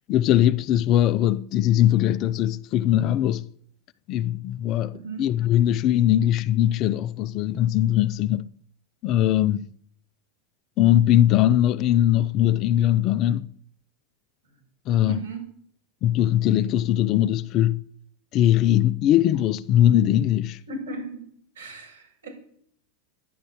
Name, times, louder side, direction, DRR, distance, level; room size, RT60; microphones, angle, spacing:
voice 1, 0.1-3.5 4.1-8.5 9.0-9.7 10.8-13.5 14.9-15.3 16.0-17.8 18.3-20.6, left 12 dB, 45° left, 0.6 m, -21 dB
voice 2, 4.9-5.3 15.1-15.4 20.7-21.2 21.6-22.3, right 2 dB, 85° right, 7.6 m, -36 dB
11.0 x 10.5 x 8.7 m
hypercardioid pair, 95°, 0 cm